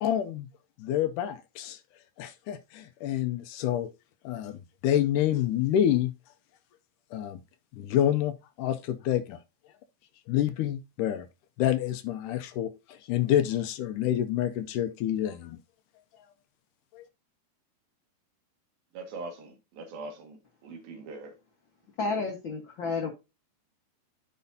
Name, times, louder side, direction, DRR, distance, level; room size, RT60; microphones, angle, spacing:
voice 1, 0.0-0.5 0.8-1.8 2.2-3.9 4.2-6.1 7.1-7.4 7.7-9.4 10.3-11.3 11.6-15.6 16.9-17.0, left 11 dB, 80° left, 1.9 m, -28 dB
voice 2, 18.9-20.4 20.6-21.3, right 3 dB, 75° right, 3.6 m, -41 dB
voice 3, 22.0-23.1, left 4 dB, 65° left, 1.2 m, -31 dB
13.5 x 5.2 x 2.7 m
omnidirectional pair, 4.2 m